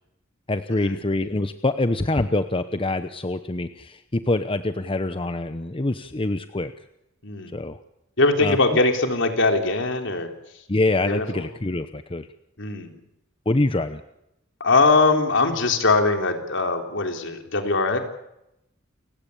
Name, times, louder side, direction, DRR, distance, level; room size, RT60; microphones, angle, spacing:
voice 1, 0.5-6.7 7.5-7.8 8.4-8.8 10.7-12.3 13.5-14.0, left 2 dB, 25° left, 10 dB, 0.9 m, -25 dB
voice 2, 7.2-7.5 8.2-10.3 11.1-11.4 12.6-12.9 14.6-18.0, left 3 dB, 65° left, 5 dB, 3.8 m, -21 dB
29.5 x 16.5 x 8.5 m, 0.85 s
head